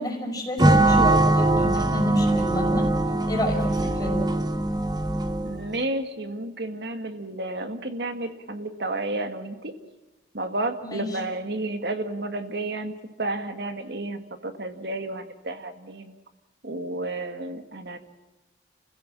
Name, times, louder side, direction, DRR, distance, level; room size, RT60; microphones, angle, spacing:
voice 1, 0.0-2.9 3.3-4.2 10.8-11.2, left 1 dB, 20° left, 0 dB, 5.6 m, -31 dB
sound 1, 0.6-5.7, right 1 dB, 25° right, 1.3 m, -21 dB
voice 2, 5.4-9.7 10.3-12.9 13.2-16.2 16.6-18.0, right 2 dB, 65° right, 8 dB, 1.9 m, -31 dB
30.0 x 16.0 x 7.5 m, 1.1 s
head